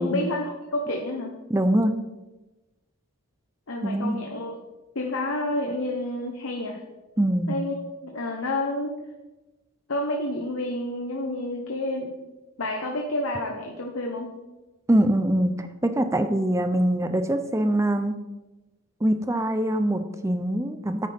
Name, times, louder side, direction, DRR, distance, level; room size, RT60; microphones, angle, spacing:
voice 1, 0.0-1.3 3.7-4.6 4.9-6.8 7.5-9.0 9.9-12.1 12.6-14.3, left 1 dB, 75° left, 1 dB, 1.0 m, -29 dB
voice 2, 1.5-1.9 3.8-4.2 7.2-7.5 14.9-18.2 19.0-21.1, right 1 dB, 15° right, 8 dB, 0.5 m, -23 dB
9.5 x 9.4 x 3.6 m, 1.1 s
head